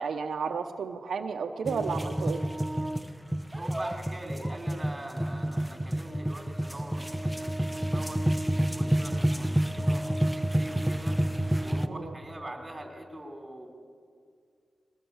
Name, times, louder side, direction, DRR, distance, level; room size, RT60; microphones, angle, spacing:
voice 1, 0.0-2.5 11.9-12.2, right 5 dB, 85° right, 5 dB, 0.8 m, -32 dB
sound 1, 1.7-11.9, right 1 dB, 5° right, 1.0 m, -29 dB
voice 2, 3.5-8.2 8.7-11.2 11.6-13.7, right 1 dB, 25° right, 3 dB, 4.0 m, -43 dB
22.5 x 18.5 x 7.2 m, 2.3 s
cardioid pair, 65°, 0 cm